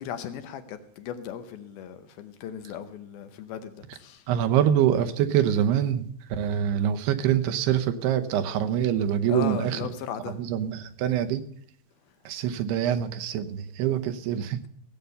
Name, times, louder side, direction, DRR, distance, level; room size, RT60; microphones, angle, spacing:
voice 1, 0.0-4.3 9.3-10.4, left 9 dB, 75° left, 2.5 m, -37 dB
voice 2, 4.3-9.9 10.4-11.4 12.3-14.6, right 10 dB, 80° right, 2.9 m, -25 dB
17.5 x 8.1 x 6.7 m
omnidirectional pair, 4.8 m